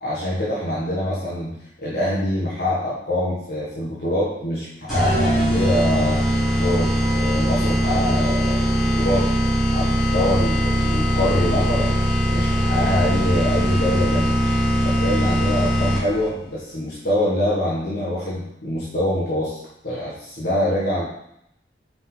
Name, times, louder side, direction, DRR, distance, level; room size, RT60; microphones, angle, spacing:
voice 1, 0.0-1.5 1.8-6.2 6.6-8.6 9.0-9.3 9.7-12.0 12.3-14.3 14.8-21.0, left 1 dB, 60° left, -8 dB, 1.7 m, -24 dB
sound 1, 4.9-16.3, equal, ahead, 2.8 m, -20 dB
5.8 x 5.5 x 4.0 m, 0.77 s
head